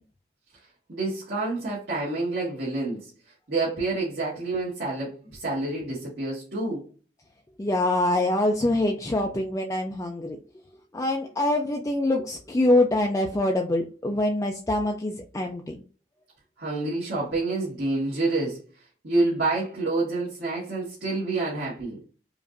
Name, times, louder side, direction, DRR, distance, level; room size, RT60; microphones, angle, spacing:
voice 1, 0.9-3.1 3.5-6.9 16.6-18.6 19.0-22.0, right 2 dB, 65° right, 1.7 m, -28 dB
voice 2, 7.6-10.4 10.9-15.8, left 1 dB, 15° left, 0.3 m, -24 dB
5.0 x 2.5 x 2.5 m
head